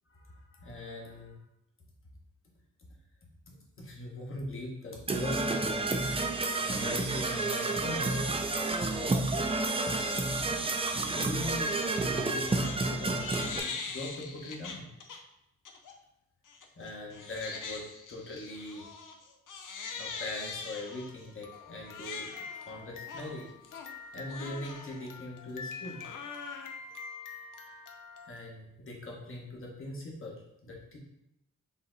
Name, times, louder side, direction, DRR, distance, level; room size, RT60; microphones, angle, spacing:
voice 1, 0.6-1.4 3.5-5.6 6.6-8.2 11.0-14.9 16.8-17.8 18.1-18.8 20.0-22.3 22.7-23.5 24.1-26.0 28.2-31.0, left 1 dB, 40° left, -2 dB, 1.2 m, -41 dB
Percussion / Brass instrument, 5.1-13.6, right 2 dB, 15° right, 0.5 m, -30 dB
Crying sobbing, 12.2-12.8 13.1-15.2 15.7-15.9 16.5-28.4, left 5 dB, 70° left, 0.6 m, -43 dB
5.5 x 2.1 x 3.9 m, 0.84 s
cardioid pair, 55°, 33 cm